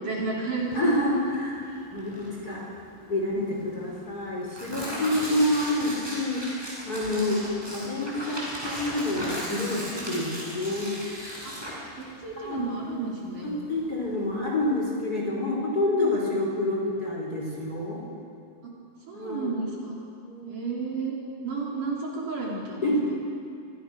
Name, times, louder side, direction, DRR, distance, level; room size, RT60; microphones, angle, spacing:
voice 1, 0.0-0.9 3.3-3.8 4.7-5.2 7.4-7.7 10.2-10.4 11.4-11.5 11.9-13.5 16.0-16.2 18.6-18.7 19.1-20.0 20.5-21.2 21.4-22.9, right 4 dB, 50° right, -3 dB, 4.8 m, -33 dB
Tearing, 0.6-14.9, equal, 5° right, 7.0 m, -38 dB
voice 2, 0.7-1.6 1.9-2.7 3.1-6.5 6.8-7.4 7.7-10.9 11.6-11.7 12.4-12.7 13.4-18.0 19.1-19.5 20.2-20.6 22.8-23.2, left 1 dB, 20° left, -3 dB, 4.7 m, -28 dB
28.0 x 24.5 x 6.4 m, 2.4 s
omnidirectional pair, 4.9 m